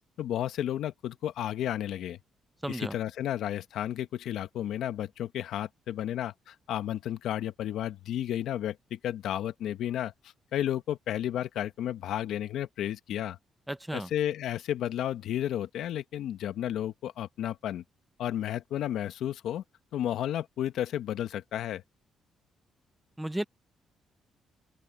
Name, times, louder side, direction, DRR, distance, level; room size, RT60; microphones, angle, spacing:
voice 1, 0.2-2.2 2.7-10.1 10.5-13.4 13.9-17.8 18.2-19.6 19.9-21.8, left 11 dB, 80° left, 1.4 m, -32 dB
voice 2, 2.6-2.9 13.7-14.1 23.2-23.4, right 1 dB, 10° right, 0.8 m, -33 dB
open air
cardioid pair, 90°, 0 cm